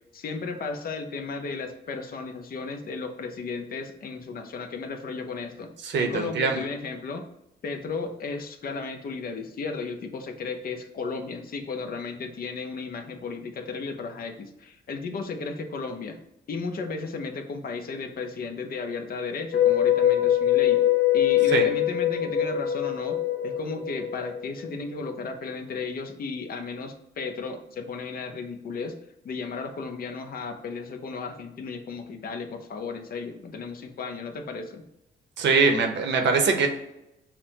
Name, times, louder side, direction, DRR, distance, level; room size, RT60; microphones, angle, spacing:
voice 1, 0.1-5.7 6.0-7.2 7.6-16.2 16.5-20.8 21.1-28.9 29.2-34.8, left 4 dB, 50° left, 5 dB, 0.6 m, -34 dB
voice 2, 5.8-6.6 21.5-21.6 35.4-36.7, right 4 dB, 65° right, 4 dB, 0.8 m, -22 dB
sound 1, 19.5-24.7, left 11 dB, 35° left, 1.3 m, -23 dB
5.8 x 2.1 x 2.8 m, 0.86 s
cardioid pair, 90°, 20 cm